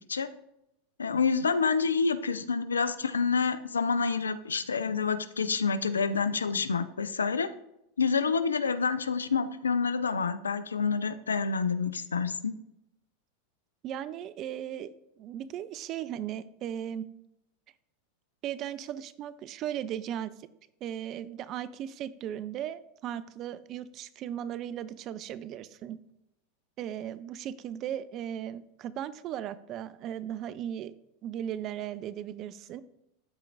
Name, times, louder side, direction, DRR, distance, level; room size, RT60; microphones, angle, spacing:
voice 1, 1.0-7.5 8.0-12.5, left 5 dB, 90° left, 13 dB, 0.4 m, -28 dB
voice 2, 13.8-14.9 15.2-17.1 18.4-20.5 20.8-26.0 26.8-30.9 31.2-32.8, right 10 dB, 45° right, 16 dB, 0.5 m, -37 dB
13.0 x 4.4 x 2.5 m, 0.83 s
hypercardioid pair, 90°, 0 cm